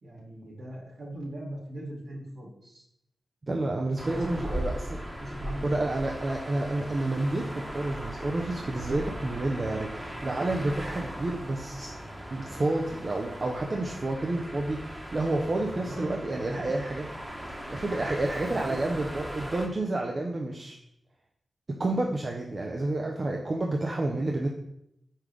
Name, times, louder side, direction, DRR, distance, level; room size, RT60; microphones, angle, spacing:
voice 1, 0.0-2.8 4.1-4.7 5.2-5.9 15.6-16.7 18.3-18.8, right 1 dB, 70° right, -6 dB, 2.3 m, -40 dB
voice 2, 3.5-4.7 5.6-11.9 12.3-17.1 17.7-20.8 21.8-24.5, right 2 dB, 50° right, 1 dB, 0.7 m, -29 dB
sound 1, 4.0-19.7, equal, 10° right, 1.2 m, -39 dB
5.6 x 4.8 x 3.4 m, 0.79 s
supercardioid pair, 40°, 0 cm